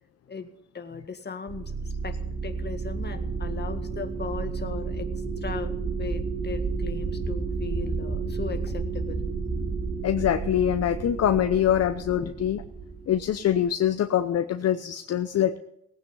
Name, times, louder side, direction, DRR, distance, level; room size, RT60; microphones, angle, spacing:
voice 1, 0.3-2.2 2.4-9.2 12.2-12.3, left 5 dB, 35° left, 7 dB, 1.8 m, -38 dB
sound 1, 1.5-13.7, right 4 dB, 40° right, 2.5 m, -31 dB
voice 2, 10.0-12.6 13.1-15.6, left 10 dB, 55° left, 9 dB, 0.8 m, -24 dB
18.0 x 9.3 x 5.5 m, 0.81 s
cardioid pair, 90°, 30 cm